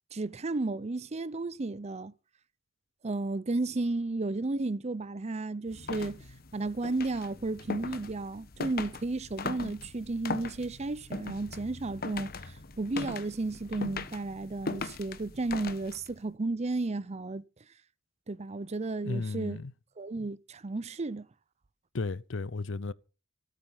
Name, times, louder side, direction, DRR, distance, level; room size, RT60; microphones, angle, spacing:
voice 1, 0.1-2.1 3.0-6.2 6.5-12.3 12.8-17.4 18.3-19.6 20.0-21.3, right 2 dB, 35° right, 0.6 m, -33 dB
sound 1, 5.7-16.2, left 3 dB, 50° left, 1.1 m, -40 dB
voice 2, 19.0-19.7 21.9-22.9, left 3 dB, 80° left, 0.7 m, -34 dB
17.0 x 9.2 x 5.7 m
head